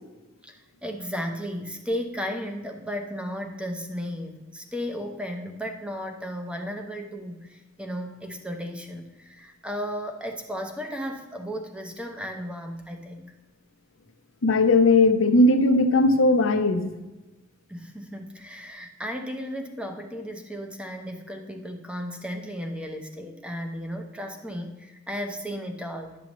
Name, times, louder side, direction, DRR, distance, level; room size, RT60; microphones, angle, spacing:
voice 1, 0.4-13.3 17.7-26.2, equal, 5° right, 4 dB, 0.8 m, -34 dB
voice 2, 14.4-17.0, left 2 dB, 85° left, 8 dB, 0.7 m, -18 dB
11.0 x 6.9 x 3.1 m, 1.1 s
head